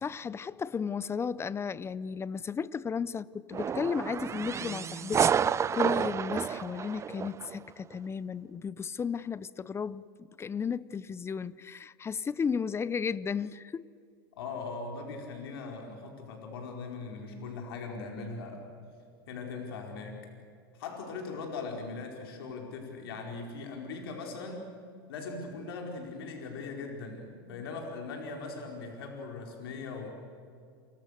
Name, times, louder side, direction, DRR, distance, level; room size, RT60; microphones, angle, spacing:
voice 1, 0.0-10.0 10.4-13.8, left 6 dB, 20° left, 0.6 m, -34 dB
sound 1, 3.5-7.6, right 7 dB, 25° right, 0.6 m, -30 dB
voice 2, 14.4-18.7 19.3-20.2 20.8-24.7 25.1-30.1, left 4 dB, 80° left, 4.9 m, -40 dB
29.0 x 25.0 x 6.7 m
hypercardioid pair, 105°, 12 cm